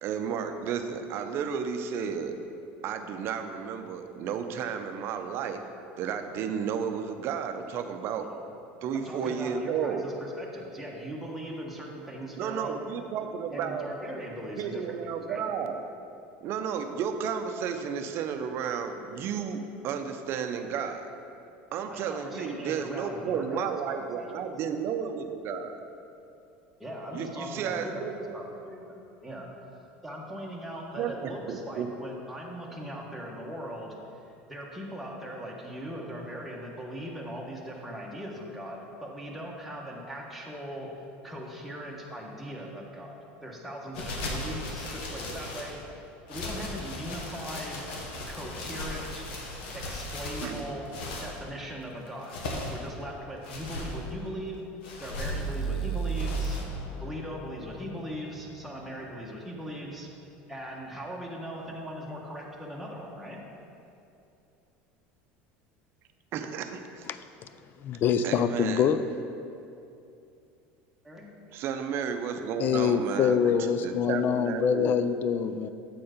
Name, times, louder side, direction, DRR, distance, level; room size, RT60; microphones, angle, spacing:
voice 1, 0.0-2.4 2.8-5.6 6.0-8.3 8.8-10.1 12.4-13.9 14.6-15.9 16.4-21.1 21.7-25.8 27.1-28.4 31.0-31.9 50.4-50.7 66.3-67.1 68.2-68.9 71.5-73.5 73.8-74.9, right 7 dB, 50° right, 7 dB, 0.5 m, -32 dB
voice 2, 8.9-12.8 13.5-14.9 15.3-15.4 21.8-24.3 26.8-29.5 30.0-34.0 34.2-40.9 41.2-43.2 43.4-45.8 46.3-47.9 48.3-49.2 49.7-50.9 51.2-52.4 52.7-54.6 55.0-56.6 57.0-60.1 60.5-63.4 71.0-71.3, equal, ahead, -3 dB, 1.0 m, -39 dB
sound 1, 43.9-45.8 46.3-51.4 52.1-52.9 53.4-54.0 54.8-55.5 56.2-56.6, left 2 dB, 85° left, 1.2 m, -37 dB
sound 2, 55.3-59.2, right 4 dB, 65° left, 0.8 m, -34 dB
voice 3, 67.8-69.0 72.6-75.7, left 7 dB, 40° left, 12 dB, 0.3 m, -25 dB
7.6 x 4.4 x 5.0 m, 2.7 s
supercardioid pair, 125°, 5 cm